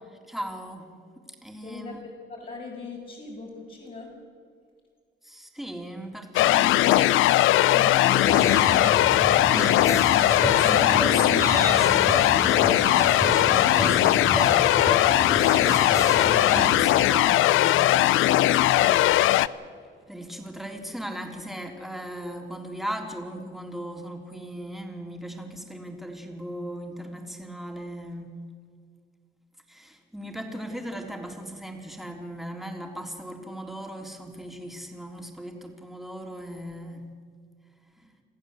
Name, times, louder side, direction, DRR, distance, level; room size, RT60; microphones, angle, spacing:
voice 1, 0.3-0.9 1.4-2.0 5.2-9.1 10.1-14.6 16.0-19.5 20.1-28.3 29.7-37.1 38.0-38.2, right 1 dB, ahead, 2 dB, 3.4 m, -38 dB
voice 2, 1.6-4.2, left 4 dB, 45° left, -5 dB, 6.2 m, -40 dB
sound 1, 6.4-19.5, left 15 dB, 85° left, 0.5 m, -20 dB
sound 2, 8.2-16.8, left 1 dB, 15° left, 2.8 m, -29 dB
27.5 x 14.5 x 7.9 m, 2.1 s
cardioid pair, 90°, 20 cm